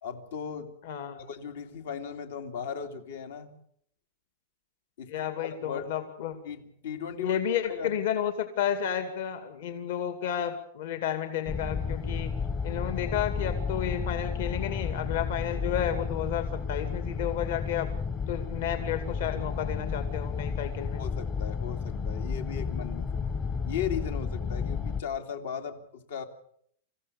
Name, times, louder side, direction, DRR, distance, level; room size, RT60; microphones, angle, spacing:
voice 1, 0.0-0.7 1.2-3.5 5.0-5.9 6.4-7.4 7.6-7.9 20.9-23.2 23.7-26.2, left 7 dB, 75° left, 7 dB, 2.7 m, -37 dB
voice 2, 0.8-1.2 5.1-6.4 7.2-12.3 12.6-17.9 18.3-21.0, left 9 dB, 60° left, 8 dB, 2.4 m, -31 dB
sound 1, 11.5-25.0, left 5 dB, 20° left, 0.9 m, -32 dB
27.0 x 15.5 x 7.0 m, 0.66 s
supercardioid pair, 170°, 0 cm